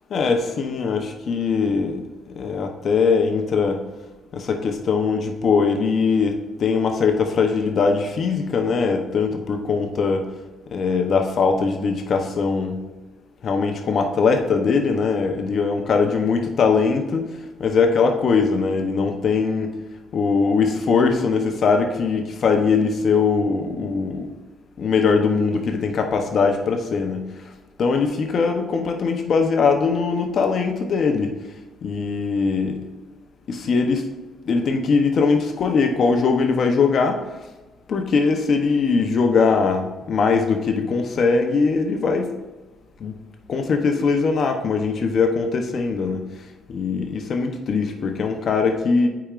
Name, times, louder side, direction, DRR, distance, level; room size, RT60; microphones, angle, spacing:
voice 1, 0.1-2.0 2.4-3.8 4.3-10.3 10.7-12.8 13.4-19.8 20.1-24.3 24.8-27.2 27.8-31.4 31.8-32.9 33.5-34.0 34.5-37.2 37.9-42.3 43.0-43.1 43.5-46.2 46.7-49.1, left 5 dB, 55° left, 4 dB, 0.8 m, -21 dB
8.6 x 4.9 x 2.5 m, 1.1 s
cardioid pair, 95°, 0 cm